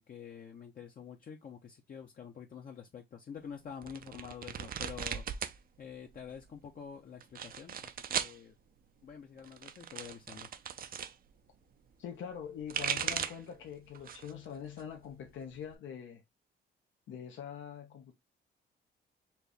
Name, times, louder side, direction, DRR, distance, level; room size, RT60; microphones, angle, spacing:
voice 1, 0.0-8.5 9.0-10.5, left 7 dB, 45° left, 0.8 m, -48 dB
sound 1, 3.8-5.6 5.9-6.5 7.2-8.4 9.4-11.1 12.4-13.5 13.9-14.4 14.8-15.7, right 8 dB, 45° right, 0.5 m, -38 dB
voice 2, 12.0-16.2 17.1-18.1, left 8 dB, 70° left, 0.9 m, -44 dB
4.4 x 2.7 x 3.3 m
cardioid pair, 90°, 20 cm